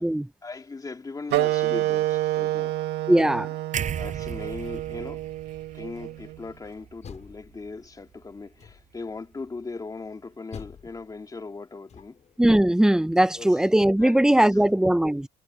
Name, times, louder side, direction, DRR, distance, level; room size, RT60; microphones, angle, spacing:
voice 1, 0.4-2.8 4.0-5.2 5.7-12.2 13.3-13.6 14.0-14.7, left 3 dB, 20° left, 2.6 m, -39 dB
Wind instrument woodwind instrument, 1.3-6.4, right 15 dB, 85° right, 1.9 m, -28 dB
voice 2, 3.1-3.5 12.4-15.3, right 1 dB, 5° right, 0.7 m, -20 dB
sound 1, 3.7-7.8 8.1-8.3, right 8 dB, 45° right, 5.9 m, -36 dB
Door, 6.8-8.0 8.6-9.2 10.5-12.4, left 7 dB, 45° left, 5.7 m, -47 dB
cardioid pair, 110°, 17 cm